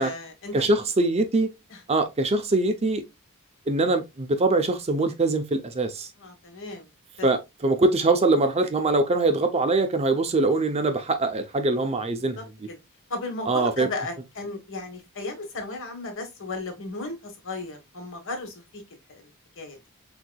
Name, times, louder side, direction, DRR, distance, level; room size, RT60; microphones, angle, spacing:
voice 1, 0.0-0.5 1.7-1.8 6.2-6.9 7.2-7.3 12.4-12.8 13.1-18.8 19.1-19.3 19.6-19.8, left 2 dB, 60° left, 1.3 m, -35 dB
voice 2, 0.5-1.5 1.9-3.0 3.7-6.1 7.2-12.4 13.5-13.9, right 2 dB, 30° right, 0.5 m, -23 dB
4.5 x 3.7 x 2.3 m
head